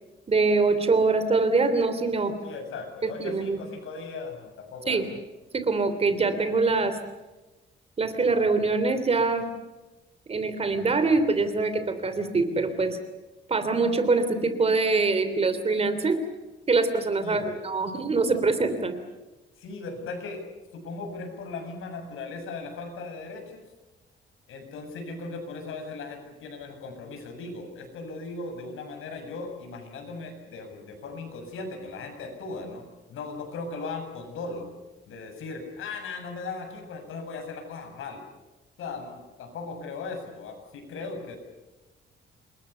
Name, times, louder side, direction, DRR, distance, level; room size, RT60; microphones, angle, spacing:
voice 1, 0.3-2.3 3.0-3.6 4.9-5.0 5.5-7.0 8.0-9.5 10.3-13.0 13.5-16.2 16.7-18.9, right 3 dB, 30° right, 10 dB, 3.2 m, -24 dB
voice 2, 2.4-5.2 17.2-17.6 19.6-20.4 20.7-23.7 24.5-32.8 33.1-34.7 35.1-38.2 38.8-41.4, left 3 dB, 90° left, 5 dB, 7.3 m, -38 dB
28.5 x 22.0 x 6.9 m, 1.1 s
cardioid pair, 145°, 20 cm